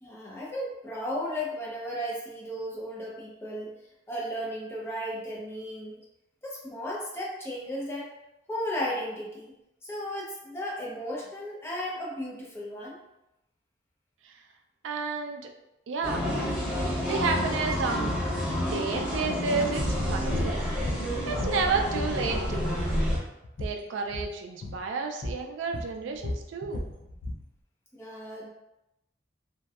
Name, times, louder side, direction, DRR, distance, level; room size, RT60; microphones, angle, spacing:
voice 1, 0.0-3.7 4.1-6.0 6.4-8.1 8.5-9.5 9.8-13.0 27.9-28.5, equal, 15° left, -5 dB, 0.5 m, -35 dB
voice 2, 14.8-15.4 15.9-16.2 17.0-18.2 18.6-23.0 23.6-26.9, right 4 dB, 90° right, 4 dB, 0.3 m, -31 dB
sound 1, 16.0-23.2, equal, 40° left, 1.1 m, -29 dB
sound 2, 19.8-20.0 20.3-20.5 20.9-21.7 22.0-23.8 24.1-24.3 24.6-24.8 25.2-25.4 25.7-27.4, left 1 dB, 85° left, 0.4 m, -35 dB
2.6 x 2.2 x 2.3 m, 0.91 s
head